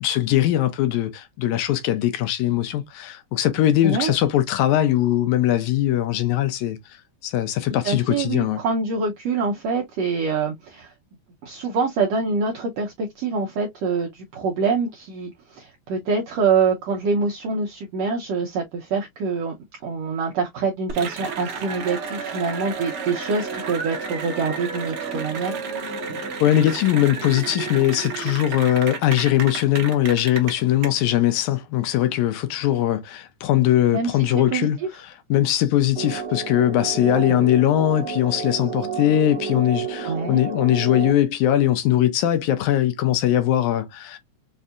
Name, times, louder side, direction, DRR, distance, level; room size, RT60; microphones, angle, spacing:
voice 1, 0.0-8.6 26.4-44.2, left 12 dB, 75° left, 1.8 m, -21 dB
voice 2, 7.8-10.9 11.4-19.5 19.8-25.5 33.9-34.7 37.3-37.4 40.0-40.4, right 5 dB, 80° right, 1.5 m, -25 dB
Cheering / Applause, 20.9-30.9, right 5 dB, 60° right, 1.5 m, -31 dB
sound 1, 35.9-41.1, right 6 dB, 15° right, 1.0 m, -31 dB
5.4 x 2.6 x 2.4 m
omnidirectional pair, 3.8 m